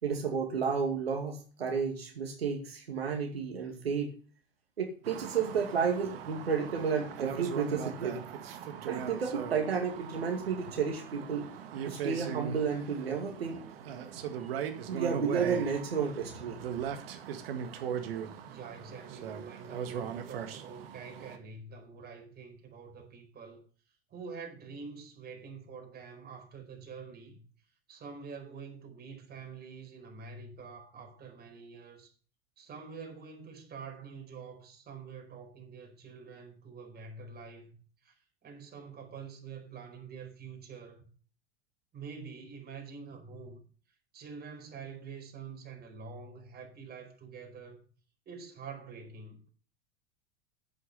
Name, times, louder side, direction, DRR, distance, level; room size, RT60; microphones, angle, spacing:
voice 1, 0.0-4.1 4.8-8.2 8.9-11.5 11.8-13.6 14.9-16.6, right 6 dB, 90° right, 2.4 m, -32 dB
sound 1, 5.0-21.4, right 8 dB, 75° right, 1.8 m, -39 dB
voice 2, 18.4-23.7 24.1-27.4 27.9-32.1 32.6-37.7 38.0-41.1 41.9-43.6 44.1-47.8 48.3-49.5, right 5 dB, 30° right, 4.6 m, -46 dB
9.7 x 8.2 x 5.4 m
hypercardioid pair, 90°, 30 cm